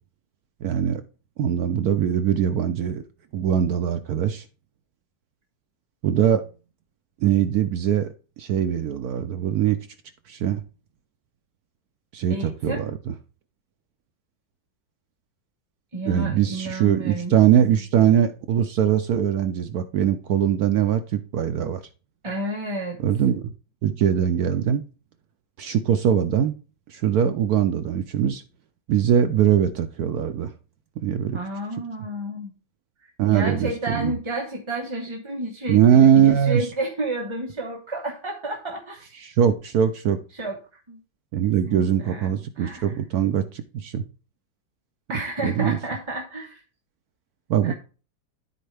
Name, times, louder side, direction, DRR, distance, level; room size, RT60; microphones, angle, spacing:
voice 1, 0.6-1.0 1.4-3.0 3.3-4.5 6.0-6.5 7.2-9.8 10.3-10.6 12.1-13.1 16.1-21.8 23.0-23.5 23.8-24.8 25.6-26.5 26.9-28.4 28.9-30.5 31.0-31.4 33.2-34.1 35.7-36.7 39.2-40.2 41.3-44.0 45.4-45.8 47.5-47.7, right 9 dB, 70° right, 0.9 m, -21 dB
voice 2, 12.3-12.8 15.9-17.3 22.2-23.0 31.3-32.5 33.3-39.1 40.3-40.6 40.9-41.0 41.4-42.9 45.1-46.6 47.6-47.7, right 1 dB, 20° right, 0.9 m, -31 dB
13.0 x 4.3 x 3.3 m
omnidirectional pair, 2.1 m